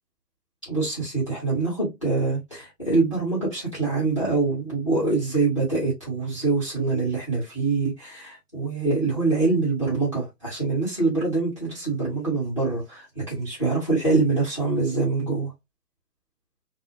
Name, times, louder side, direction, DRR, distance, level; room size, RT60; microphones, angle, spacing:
voice 1, 0.7-15.5, right 3 dB, 20° left, 0.6 m, -24 dB
2.6 x 2.1 x 2.5 m
figure-of-eight pair, 145°, 49 cm